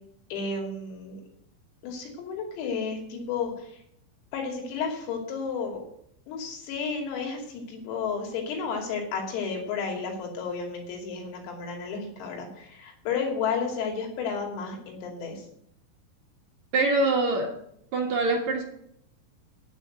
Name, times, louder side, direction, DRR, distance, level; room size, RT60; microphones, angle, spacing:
voice 1, 0.3-1.2 1.8-3.8 4.3-5.8 6.3-15.4, left 5 dB, 85° left, 1 dB, 5.3 m, -32 dB
voice 2, 16.7-17.6 17.9-18.6, right 2 dB, 60° right, 0 dB, 2.0 m, -24 dB
9.3 x 8.9 x 7.8 m, 0.72 s
omnidirectional pair, 5.9 m